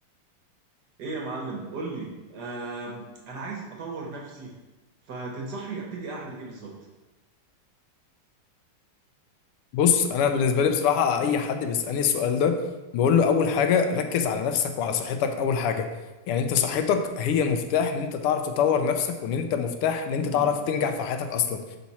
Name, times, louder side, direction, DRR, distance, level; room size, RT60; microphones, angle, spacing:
voice 1, 1.0-4.6 5.1-6.7 14.7-14.9 20.2-20.5, right 3 dB, 60° right, -2 dB, 1.3 m, -36 dB
voice 2, 9.7-12.6 12.9-15.9 16.3-21.6, left 7 dB, 85° left, 7 dB, 1.5 m, -24 dB
5.8 x 4.2 x 4.1 m, 1.2 s
omnidirectional pair, 2.4 m